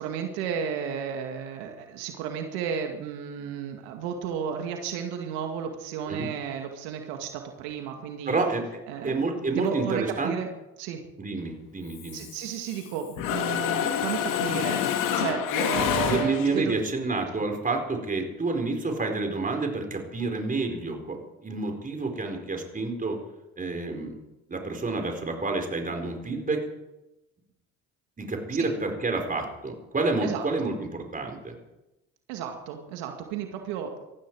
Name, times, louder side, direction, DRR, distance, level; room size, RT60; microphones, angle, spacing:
voice 1, 0.0-8.4 8.9-9.2 9.5-10.5 10.8-11.0 12.1-16.8 28.6-28.7 30.2-30.7 32.3-34.0, right 8 dB, 80° right, 3 dB, 2.1 m, -33 dB
voice 2, 8.3-8.6 9.0-10.3 11.2-12.2 15.8-23.2 23.6-24.1 24.5-26.6 28.2-31.5, right 3 dB, 25° right, 3 dB, 4.5 m, -29 dB
Mechanisms, 11.9-12.9 13.2-16.7, left 9 dB, 70° left, 2.3 m, -28 dB
19.5 x 14.0 x 4.8 m, 0.96 s
supercardioid pair, 80°, 34 cm